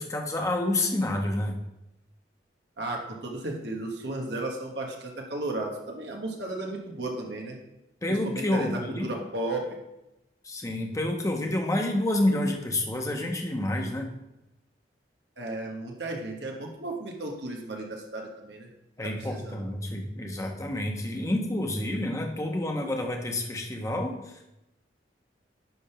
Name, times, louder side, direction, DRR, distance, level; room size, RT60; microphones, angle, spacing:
voice 1, 0.0-1.5 8.0-9.1 10.4-14.1 19.0-24.4, left 1 dB, 20° left, 2 dB, 1.1 m, -29 dB
voice 2, 2.8-7.6 8.1-9.6 15.4-18.7 19.0-19.6, right 2 dB, 75° right, 1 dB, 1.3 m, -34 dB
10.5 x 3.6 x 5.7 m, 0.91 s
head